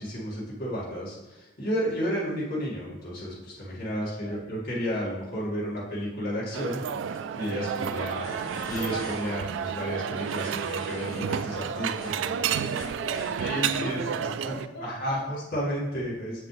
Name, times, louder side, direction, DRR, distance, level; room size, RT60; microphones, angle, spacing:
voice 1, 0.0-12.1 13.4-16.5, equal, 55° left, -6 dB, 2.2 m, -32 dB
voice 2, 3.9-4.4 11.8-15.2, equal, 90° left, -3 dB, 1.7 m, -41 dB
sound 1, 6.5-14.7, right 8 dB, 85° right, 0.3 m, -31 dB
sound 2, 8.0-9.3 10.2-11.2 11.6-13.4, equal, 25° left, 2.4 m, -42 dB
7.5 x 5.8 x 3.4 m, 1.0 s
head